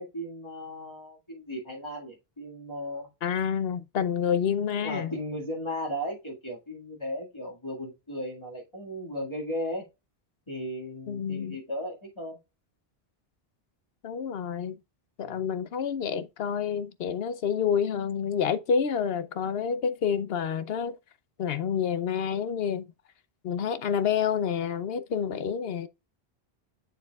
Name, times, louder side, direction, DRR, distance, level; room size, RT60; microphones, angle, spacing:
voice 1, 0.0-3.1 4.8-9.9 10.5-12.4 15.2-15.5, equal, 25° left, 2.1 m, -36 dB
voice 2, 3.2-5.1 11.1-11.6 14.0-14.8 15.2-21.0 21.4-22.9 23.4-25.9, left 7 dB, 70° left, 0.9 m, -28 dB
7.3 x 7.3 x 2.3 m
omnidirectional pair, 1.0 m